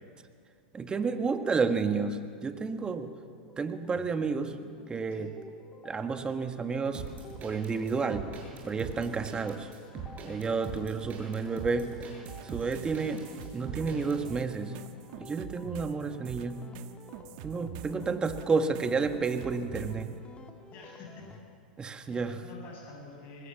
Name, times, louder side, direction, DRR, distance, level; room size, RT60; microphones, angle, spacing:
voice 1, 0.7-3.1 3.6-4.6 4.9-5.4 5.8-7.1 7.4-8.3 8.6-9.7 10.2-12.1 12.4-13.2 13.5-14.8 15.2-16.7 17.4-20.1 21.8-22.4, right 4 dB, 20° right, 8 dB, 1.7 m, -31 dB
sound 1, 2.8-21.4, left 4 dB, 20° left, 2.4 m, -52 dB
sound 2, 6.9-14.2, right 7 dB, 35° right, 7.8 m, -42 dB
sound 3, 12.3-20.1, right 12 dB, 55° right, 1.4 m, -44 dB
voice 2, 20.7-21.2 22.1-23.5, left 3 dB, 40° left, -1 dB, 7.4 m, -47 dB
24.0 x 20.0 x 7.3 m, 2.3 s
hypercardioid pair, 105°, 5 cm